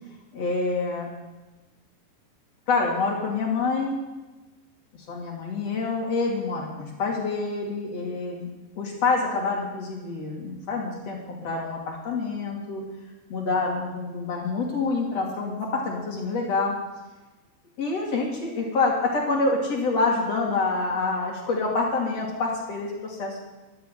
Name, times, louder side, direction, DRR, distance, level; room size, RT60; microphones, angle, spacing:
voice 1, 0.3-1.1 2.7-3.9 5.1-8.5 8.8-12.8 13.3-16.8 17.8-23.4, left 3 dB, 40° left, -1 dB, 3.2 m, -27 dB
12.5 x 9.0 x 9.0 m, 1.1 s
omnidirectional pair, 5.3 m